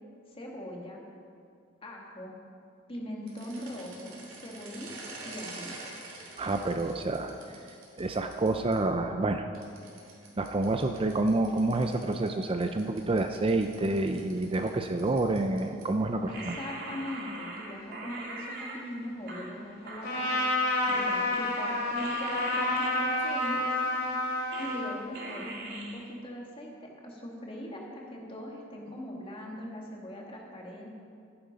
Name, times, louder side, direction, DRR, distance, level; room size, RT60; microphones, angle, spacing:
voice 1, 0.3-1.0 1.8-2.3 2.9-5.7 16.3-20.5 20.9-23.8 24.6-30.9, equal, 30° left, -1 dB, 2.0 m, -40 dB
sound 1, 3.2-8.7 9.5-16.0, right 3 dB, 70° right, 3.3 m, -48 dB
voice 2, 6.4-7.3 8.0-9.5 10.4-16.6, right 2 dB, 25° right, 6 dB, 0.5 m, -28 dB
sound 2, 16.3-18.8 19.3-20.6 20.9-24.9 25.1-26.0, right 2 dB, 55° right, 2.1 m, -42 dB
Trumpet, 20.0-25.0, left 1 dB, 55° left, 2.9 m, -29 dB
14.0 x 10.5 x 5.2 m, 2.4 s
head